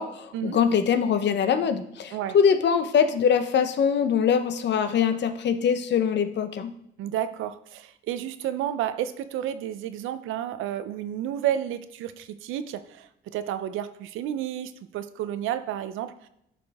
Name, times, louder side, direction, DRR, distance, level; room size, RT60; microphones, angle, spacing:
voice 1, 0.0-6.7, left 7 dB, 60° left, 9 dB, 0.8 m, -23 dB
voice 2, 7.0-16.3, right 11 dB, 90° right, 12 dB, 0.6 m, -31 dB
11.0 x 5.1 x 3.5 m, 0.78 s
cardioid pair, 90°, 20 cm